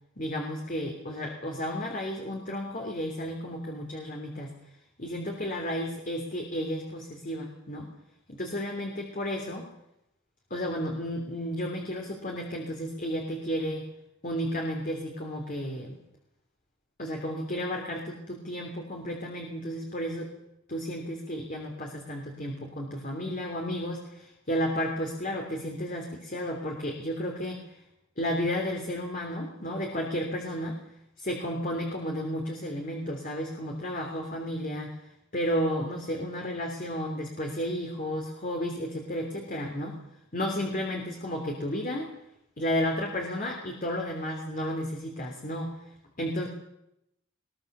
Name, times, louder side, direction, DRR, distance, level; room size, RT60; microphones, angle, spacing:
voice 1, 0.2-4.6 5.0-7.9 8.3-9.7 10.5-13.8 14.2-16.0 17.0-20.3 20.7-27.6 28.2-30.8 31.2-35.0 35.3-40.0 40.3-42.1 42.6-45.7 46.2-46.5, equal, 40° left, 1 dB, 3.1 m, -32 dB
21.5 x 21.0 x 6.8 m, 0.82 s
head